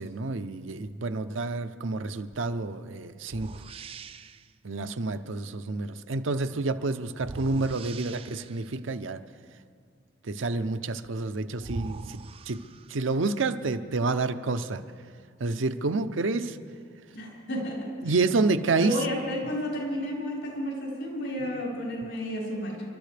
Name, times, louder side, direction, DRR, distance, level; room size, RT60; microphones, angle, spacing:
voice 1, 0.0-3.5 4.6-9.2 10.2-12.2 12.5-12.6 12.9-14.8 15.4-16.6 18.0-19.0 21.4-21.5, right 3 dB, 85° right, 9 dB, 0.7 m, -29 dB
sound 1, 2.3-2.5 3.3-4.5 7.2-8.8 11.0-11.1 11.6-13.2, right 3 dB, 30° right, 0.3 m, -41 dB
voice 2, 17.1-18.1 18.8-22.8, equal, 85° left, -4 dB, 5.1 m, -32 dB
29.5 x 12.5 x 3.4 m, 2.2 s
head